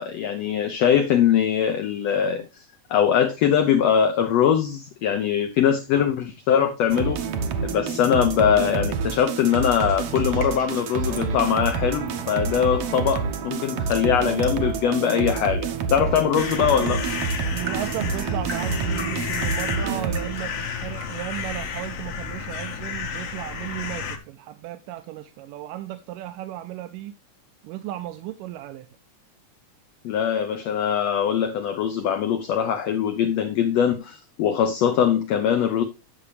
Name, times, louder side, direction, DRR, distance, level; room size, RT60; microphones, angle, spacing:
voice 1, 0.0-2.6 2.9-7.2 7.6-17.0 30.0-35.8, left 8 dB, 90° left, 1.4 m, -22 dB
sound 1, 6.9-20.5, right 5 dB, 70° right, 1.4 m, -28 dB
sound 2, 9.8-21.2, right 3 dB, 50° right, 1.0 m, -46 dB
sound 3, 16.4-24.2, left 6 dB, 60° left, 1.8 m, -32 dB
voice 2, 17.5-27.2 27.6-28.9, right 14 dB, 85° right, 2.2 m, -35 dB
10.0 x 6.9 x 3.3 m
omnidirectional pair, 3.8 m